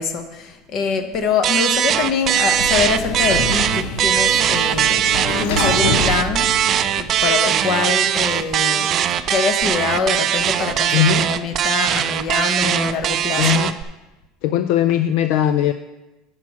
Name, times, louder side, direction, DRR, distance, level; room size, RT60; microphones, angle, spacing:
voice 1, 0.0-5.0 5.4-6.7 6.9-9.0 9.3-13.5, left 5 dB, 45° left, 7 dB, 1.0 m, -24 dB
sound 1, 1.4-13.8, right 10 dB, 40° right, 0.4 m, -20 dB
Sliding door, 2.1-7.3, left 3 dB, 85° left, 1.1 m, -26 dB
voice 2, 10.9-11.3 13.4-13.7 14.4-15.7, left 10 dB, 70° left, 10 dB, 0.3 m, -18 dB
7.2 x 6.1 x 5.7 m, 1.0 s
cardioid pair, 140°, 0 cm